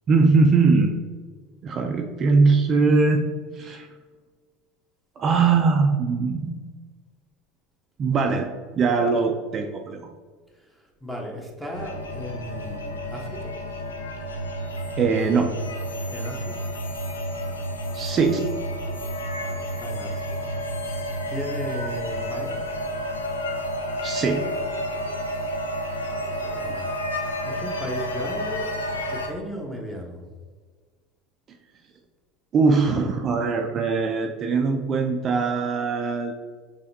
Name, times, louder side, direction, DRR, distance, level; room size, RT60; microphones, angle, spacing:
voice 1, 0.1-0.9 1.6-3.3 3.6-3.9 5.2-6.5 8.0-8.5 8.7-10.1 15.0-15.5 17.9-18.5 24.0-24.5 32.5-36.3, right 4 dB, 40° right, 4 dB, 0.4 m, -21 dB
voice 2, 10.7-13.6 16.1-16.6 19.4-20.4 21.3-22.6 26.0-26.9 27.4-30.2, equal, ahead, -1 dB, 1.2 m, -36 dB
sound 1, 11.7-29.3, equal, 90° left, 0.5 m, -30 dB
5.5 x 3.3 x 2.7 m, 1.5 s
hypercardioid pair, 80°, 0 cm